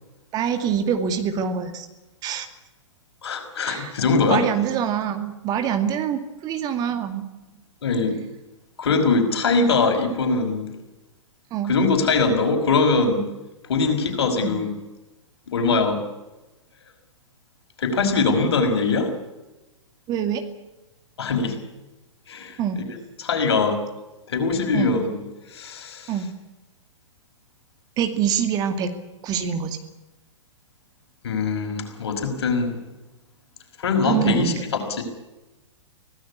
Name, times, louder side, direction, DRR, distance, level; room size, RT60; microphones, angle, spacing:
voice 1, 0.3-1.9 2.2-2.5 3.6-3.9 4.3-7.3 11.5-11.7 14.4-14.6 20.1-20.4 22.6-22.8 24.7-24.9 26.1-26.3 28.0-28.9 29.2-29.8 34.0-34.6, right 8 dB, 25° right, 7 dB, 2.3 m, -25 dB
voice 2, 3.2-4.4 7.8-8.2 8.8-10.7 11.6-13.3 13.7-14.7 15.5-16.0 17.8-19.1 21.2-21.6 22.3-22.8 23.2-23.8 24.3-25.2 25.5-26.1 31.2-32.8 33.8-35.0, left 4 dB, 55° left, 5 dB, 5.4 m, -22 dB
25.0 x 17.5 x 8.4 m, 1.0 s
figure-of-eight pair, 110°, 16 cm